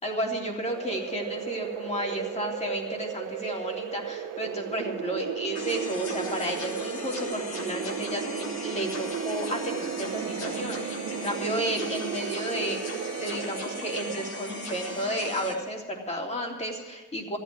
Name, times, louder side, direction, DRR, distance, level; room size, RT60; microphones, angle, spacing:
voice 1, 0.0-17.4, equal, 20° left, 0 dB, 3.3 m, -32 dB
sound 1, 0.7-14.2, right 10 dB, 85° right, 1.0 m, -35 dB
sound 2, 5.5-15.5, left 2 dB, 55° left, 4.5 m, -38 dB
14.0 x 9.2 x 9.4 m, 1.2 s
cardioid pair, 90°, 30 cm